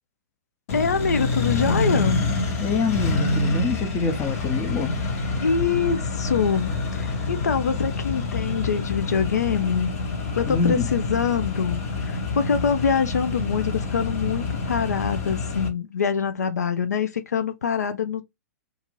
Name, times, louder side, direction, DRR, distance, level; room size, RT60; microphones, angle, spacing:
voice 1, 0.7-2.2 5.4-9.9 10.4-18.2, left 6 dB, 80° left, 0.4 m, -24 dB
Accelerating revving vroom, 0.7-15.7, left 3 dB, 60° left, 1.0 m, -27 dB
voice 2, 2.6-5.0 10.5-10.9, left 5 dB, 25° left, 0.7 m, -25 dB
2.5 x 2.5 x 3.0 m
hypercardioid pair, 115°, 9 cm